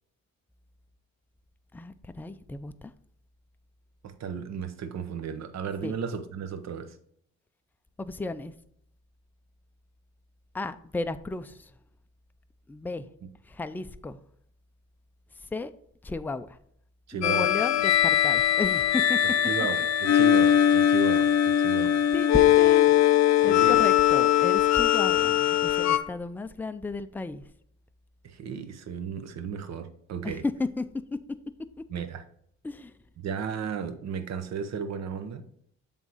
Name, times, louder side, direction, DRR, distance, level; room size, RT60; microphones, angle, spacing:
voice 1, 1.7-2.9 5.8-5.9 8.0-8.5 10.5-11.6 12.7-13.1 13.5-14.2 15.5-15.7 16.0-16.5 17.1-19.2 22.1-23.0 23.4-27.4 30.2-30.3 30.8-30.9 32.6-32.9, left 3 dB, 5° left, 10 dB, 0.4 m, -34 dB
voice 2, 4.0-7.0 17.1-17.5 19.4-22.0 22.4-22.5 23.4-23.9 28.2-30.4 31.9-32.2 33.2-35.5, right 7 dB, 60° right, 9 dB, 0.9 m, -34 dB
sound 1, 17.2-26.0, left 11 dB, 60° left, 0.7 m, -21 dB
7.6 x 3.6 x 4.0 m, 0.67 s
cardioid pair, 90°, 30 cm